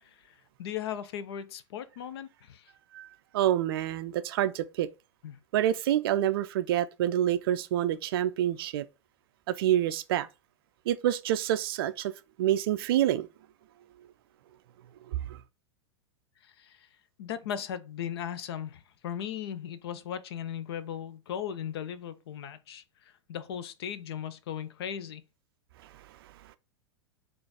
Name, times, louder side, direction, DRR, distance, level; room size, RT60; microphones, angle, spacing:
voice 1, 0.0-2.7 5.2-5.4 16.4-16.9 17.2-25.2, left 9 dB, 55° left, 0.5 m, -38 dB
voice 2, 3.3-4.9 5.5-8.9 9.5-10.3 10.9-12.1 12.4-13.3 15.3-15.4, right 12 dB, 50° right, 0.4 m, -27 dB
3.9 x 2.5 x 4.7 m
figure-of-eight pair, 95°, 16 cm